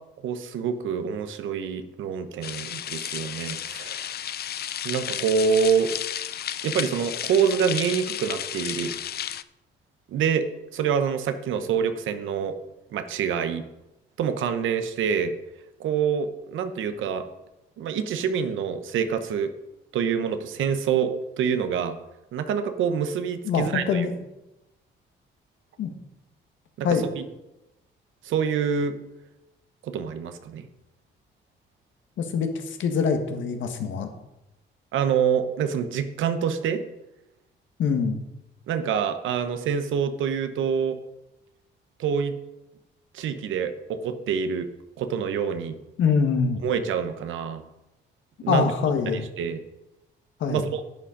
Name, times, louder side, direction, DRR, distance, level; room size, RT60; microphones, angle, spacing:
voice 1, 0.2-4.1 4.8-5.9 6.6-9.0 10.1-10.5 10.7-12.5 12.9-13.6 14.2-15.3 15.8-17.2 17.8-19.5 19.9-22.0 22.3-24.1 26.8-26.9 27.2-27.3 28.2-29.0 29.8-30.7 34.9-36.8 38.7-41.0 42.0-42.4 43.1-44.7 45.0-45.8 46.6-47.6 48.4-48.7 49.4-49.6 50.5-50.8, right 7 dB, 80° right, 9 dB, 1.1 m, -26 dB
sound 1, 2.4-9.4, left 10 dB, 55° left, 0.5 m, -33 dB
voice 2, 23.5-24.1 25.8-25.9 26.8-27.1 32.2-34.1 37.8-38.2 46.0-46.6 48.5-49.3 50.4-50.7, left 6 dB, 75° left, 6 dB, 1.7 m, -24 dB
11.0 x 8.6 x 5.1 m, 0.95 s
cardioid pair, 90°, 20 cm